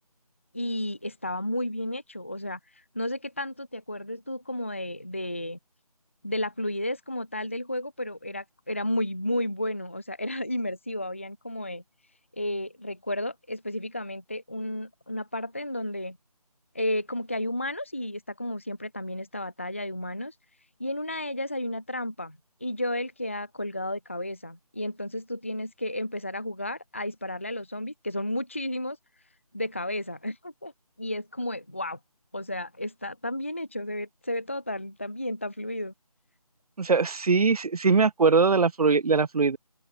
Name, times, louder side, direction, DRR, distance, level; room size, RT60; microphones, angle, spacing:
voice 1, 0.5-5.6 6.2-11.8 12.3-16.2 16.7-20.3 20.8-29.0 29.5-30.7 31.0-32.0 32.3-35.9, left 1 dB, 20° left, 0.5 m, -32 dB
voice 2, 36.8-39.6, right 4 dB, 70° right, 0.5 m, -21 dB
open air
figure-of-eight pair, 165°, 20 cm